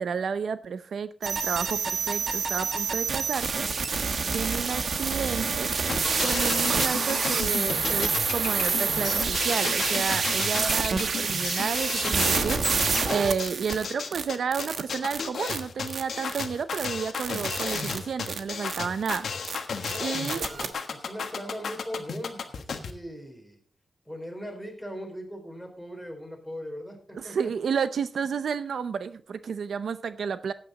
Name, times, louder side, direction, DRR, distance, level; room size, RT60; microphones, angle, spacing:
voice 1, 0.0-3.7 4.3-5.7 6.2-12.7 13.1-19.3 20.0-20.4 27.2-30.5, right 6 dB, 90° right, 13 dB, 0.6 m, -31 dB
sound 1, 1.2-13.9 14.1-14.2 14.5-14.8 15.1-15.2 15.5-15.6 15.9-16.0 16.3-16.4 16.7-16.9 17.1-18.0 18.3-18.4 18.7-18.8 19.1-19.2 19.4-19.6 19.8-20.0 20.3-20.7, right 5 dB, 65° right, 1.2 m, -27 dB
sound 2, 5.9-22.9, left 5 dB, 85° left, 1.4 m, -33 dB
voice 2, 19.8-23.6 24.1-27.5, equal, ahead, 1 dB, 3.9 m, -40 dB
15.0 x 9.1 x 4.0 m, 0.43 s
wide cardioid pair, 125°, 0 cm